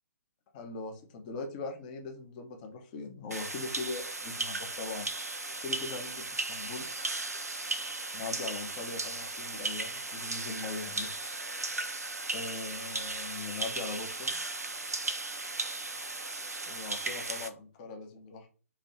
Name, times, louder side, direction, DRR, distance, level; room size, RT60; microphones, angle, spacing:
voice 1, 0.5-5.1 5.6-6.9 8.1-11.1 12.3-14.4 16.6-18.5, left 3 dB, 30° left, 3 dB, 0.8 m, -40 dB
sound 1, 3.3-17.5, right 2 dB, 80° right, 0.5 m, -36 dB
3.1 x 2.6 x 4.0 m, 0.37 s
figure-of-eight pair, 130°, 8 cm